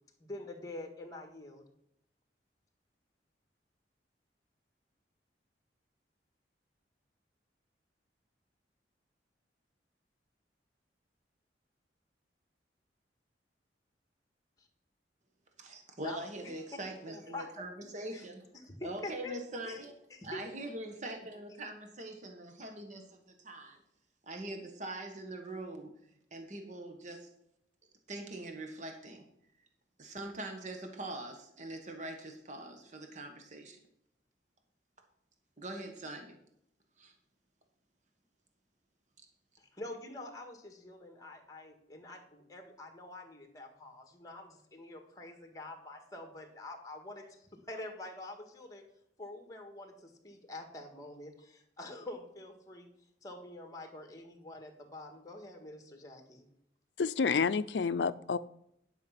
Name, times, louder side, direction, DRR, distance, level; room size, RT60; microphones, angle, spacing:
voice 1, 0.2-1.6 16.0-17.5 18.1-18.2 18.5-19.4 19.6-19.8 20.1-20.4 39.6-48.8 49.2-52.9 53.2-56.5, left 2 dB, 20° left, 4 dB, 1.7 m, -46 dB
voice 2, 15.6-18.5 18.8-19.9 20.2-23.8 24.3-25.9 26.3-27.3 28.1-29.2 30.0-33.8 35.6-36.3 37.0-37.1, right 1 dB, 45° right, 4 dB, 1.4 m, -43 dB
voice 3, 57.0-58.4, left 5 dB, 75° left, 15 dB, 0.5 m, -29 dB
11.0 x 5.7 x 5.8 m, 0.76 s
head